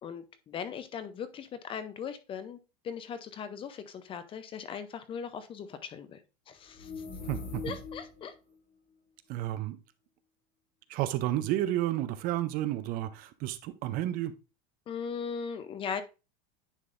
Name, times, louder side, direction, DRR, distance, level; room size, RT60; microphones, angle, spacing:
voice 1, 0.0-2.6 2.8-6.2 6.5-6.9 7.6-8.3 14.9-16.0, left 7 dB, 25° left, 0.5 m, -39 dB
sound 1, 6.7-8.2, left 4 dB, 80° left, 3.0 m, -40 dB
voice 2, 7.2-7.8 9.3-9.8 10.9-14.3, right 14 dB, 45° right, 0.5 m, -31 dB
9.8 x 3.9 x 2.5 m
supercardioid pair, 145°, 21 cm